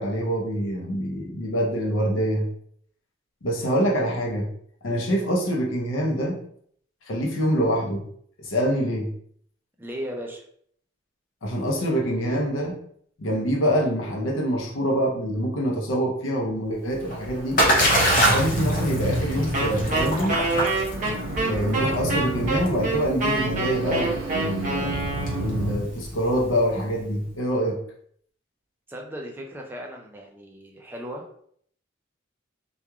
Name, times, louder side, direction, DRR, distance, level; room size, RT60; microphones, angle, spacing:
voice 1, 0.0-2.5 3.4-4.5 4.8-6.4 7.1-8.1 8.4-9.1 11.4-12.8 13.2-17.6 18.2-20.4 21.5-25.0 25.4-27.8, equal, 85° left, 0 dB, 0.7 m, -25 dB
voice 2, 9.8-10.4 28.9-31.4, equal, 10° right, 0 dB, 0.4 m, -36 dB
Splash splatter, 16.9-26.7, equal, 45° left, 0.6 m, -26 dB
sound 1, 17.0-25.8, right 1 dB, 75° right, 0.6 m, -31 dB
Wind instrument woodwind instrument, 19.5-25.6, right 2 dB, 40° right, 0.8 m, -26 dB
3.0 x 2.3 x 2.3 m, 0.63 s
head